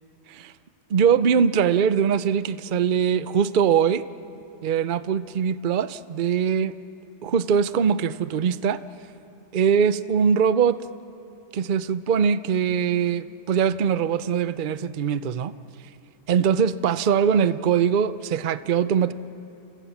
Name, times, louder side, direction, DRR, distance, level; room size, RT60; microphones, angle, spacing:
voice 1, 0.9-4.0 4.6-6.7 7.2-8.8 9.5-10.8 11.5-15.5 16.3-19.1, right 7 dB, 60° right, 13 dB, 0.5 m, -22 dB
29.5 x 27.5 x 7.3 m, 2.8 s
omnidirectional pair, 1.8 m